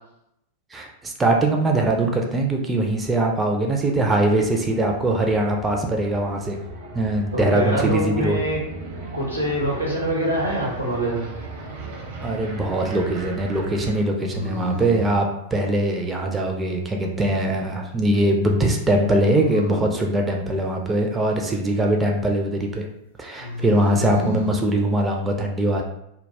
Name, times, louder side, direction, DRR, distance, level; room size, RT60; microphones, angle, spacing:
voice 1, 0.7-6.6 6.9-8.4 12.2-22.9 23.2-25.8, right 1 dB, 15° right, 2 dB, 0.3 m, -22 dB
sound 1, 3.9-14.0, right 2 dB, 55° right, 0.6 m, -37 dB
voice 2, 7.3-8.6 9.1-11.3, right 1 dB, 90° right, -3 dB, 0.8 m, -24 dB
sound 2, 11.5-12.2 14.3-15.2 19.0-20.1 23.4-24.6, left 2 dB, 80° left, 0.6 m, -31 dB
2.2 x 2.1 x 3.2 m, 0.81 s
figure-of-eight pair, 90°, 0 cm